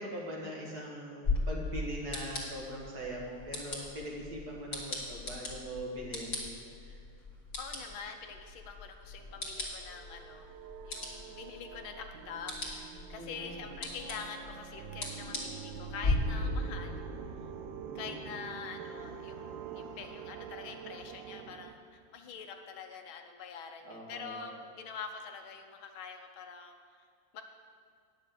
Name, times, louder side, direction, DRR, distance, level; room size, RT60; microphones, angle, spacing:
voice 1, 0.0-6.5 6.9-7.0 13.1-13.8 17.8-18.3 23.8-24.5, equal, 50° right, -3 dB, 2.3 m, -42 dB
sound 1, 1.2-16.1, left 3 dB, 40° left, 2.1 m, -39 dB
voice 2, 7.6-10.5 10.8-17.0 17.9-26.7 27.3-27.4, left 6 dB, 80° left, 5 dB, 1.7 m, -45 dB
sound 2, 9.2-21.7, right 8 dB, 75° right, 1.2 m, -46 dB
9.6 x 6.5 x 8.2 m, 2.2 s
omnidirectional pair, 2.2 m